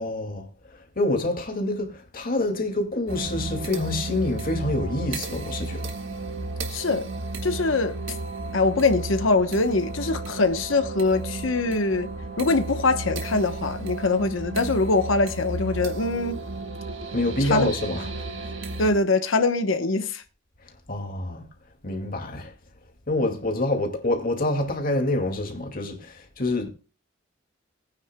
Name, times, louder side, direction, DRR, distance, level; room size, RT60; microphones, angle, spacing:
voice 1, 0.0-6.0 17.1-18.5 20.6-21.4 21.8-22.5 23.1-26.7, left 2 dB, 45° left, 2.2 m, -27 dB
sound 1, 3.1-18.9, right 2 dB, 70° right, 1.7 m, -33 dB
voice 2, 6.7-7.1 7.4-8.0 8.5-12.1 12.4-16.4 17.4-17.7 18.8-20.2, left 3 dB, 90° left, 0.9 m, -23 dB
19.5 x 9.4 x 2.2 m
head